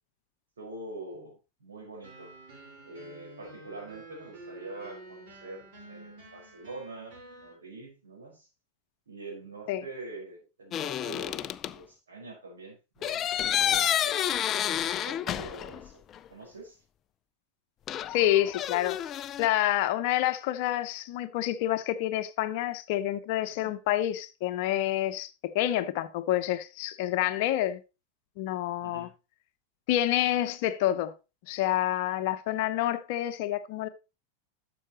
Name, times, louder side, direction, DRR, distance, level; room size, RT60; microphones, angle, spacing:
voice 1, 0.6-2.3 2.8-8.5 9.1-16.0 16.3-16.8 23.6-23.7 28.8-29.1, right 2 dB, 70° right, 4.7 m, -45 dB
sound 1, 2.0-7.5, right 2 dB, 50° right, 4.4 m, -49 dB
sound 2, 10.7-11.8 13.0-15.9 16.1-16.2 17.9-19.5, left 10 dB, 30° left, 0.4 m, -30 dB
voice 2, 18.1-19.0 19.4-27.8 28.4-29.1 29.9-31.1 31.5-33.9, left 13 dB, 50° left, 0.8 m, -28 dB
12.0 x 7.0 x 2.9 m
figure-of-eight pair, 90°, 0 cm